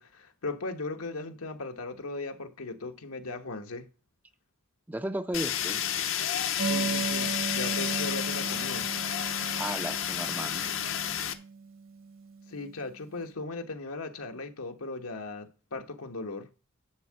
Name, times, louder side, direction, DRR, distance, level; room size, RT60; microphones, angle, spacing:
voice 1, 0.0-3.9 6.6-8.9 12.5-16.5, left 3 dB, 85° left, 1.2 m, -38 dB
voice 2, 4.9-5.8 9.6-10.7, right 1 dB, 10° right, 0.4 m, -34 dB
Fire, 5.3-11.3, left 10 dB, 65° left, 0.8 m, -31 dB
sound 1, 6.6-12.8, right 5 dB, 70° right, 1.6 m, -36 dB
11.0 x 3.7 x 7.5 m
head